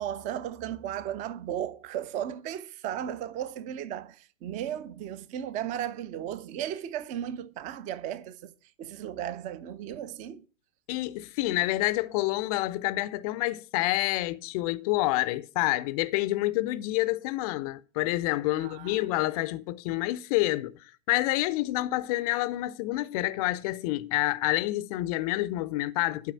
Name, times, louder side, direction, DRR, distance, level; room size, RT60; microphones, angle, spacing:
voice 1, 0.0-8.5 8.8-10.4 18.5-19.1, right 10 dB, 20° right, 0.5 m, -35 dB
voice 2, 10.9-20.7 21.1-26.3, left 18 dB, 30° left, 0.5 m, -28 dB
12.0 x 4.7 x 8.3 m
figure-of-eight pair, 105°, 40 cm